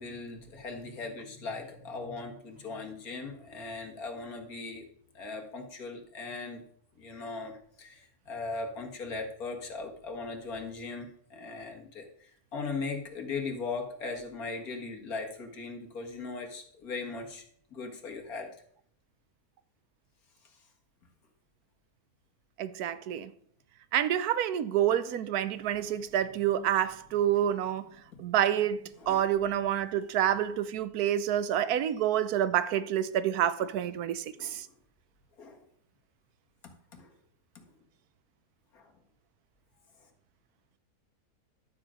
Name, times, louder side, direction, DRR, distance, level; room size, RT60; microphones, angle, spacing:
voice 1, 0.0-4.8 5.1-6.6 7.0-17.4 17.7-18.5 29.0-29.3 34.4-34.6 35.4-35.6 36.9-37.1 38.7-38.9, left 4 dB, 70° left, 2.2 m, -39 dB
voice 2, 22.6-23.3 23.9-27.9 28.2-34.7, right 10 dB, 80° right, 1.2 m, -28 dB
11.5 x 7.4 x 5.0 m
omnidirectional pair, 1.6 m